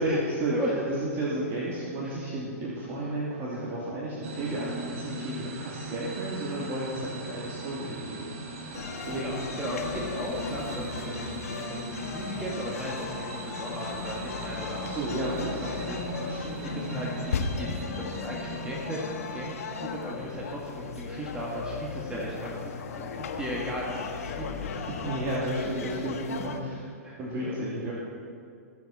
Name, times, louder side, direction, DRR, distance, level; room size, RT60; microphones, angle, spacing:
voice 1, 0.0-0.5 0.9-8.3 9.0-9.4 14.8-15.9 16.2-16.6 22.1-22.3 24.6-26.9 27.2-27.9, right 1 dB, 30° right, -7 dB, 3.0 m, -33 dB
voice 2, 0.5-0.8 2.0-2.2 9.1-14.8 15.7-16.0 16.6-19.1 19.3-19.6 19.8-22.4 22.6-24.5 27.0-27.6, equal, 10° right, -4 dB, 2.0 m, -36 dB
sound 1, 4.2-20.6, right 3 dB, 50° right, 3.4 m, -40 dB
sound 2, 8.7-26.6, left 5 dB, 70° left, 1.3 m, -36 dB
22.0 x 8.2 x 4.4 m, 2.4 s
hypercardioid pair, 120°, 8 cm